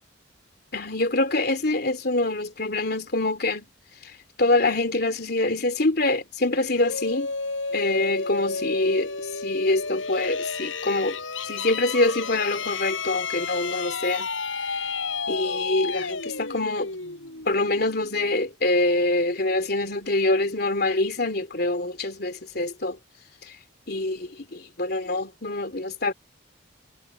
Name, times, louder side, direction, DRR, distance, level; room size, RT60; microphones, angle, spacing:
voice 1, 0.7-3.7 4.0-4.1 4.4-7.3 7.7-9.1 9.4-11.2 11.4-14.3 14.7-14.8 15.3-16.9 17.4-23.0 23.5-23.6 23.9-26.1, left 2 dB, 55° left, 3.1 m, -25 dB
sound 1, 6.7-18.3, left 4 dB, 90° left, 6.2 m, -31 dB
head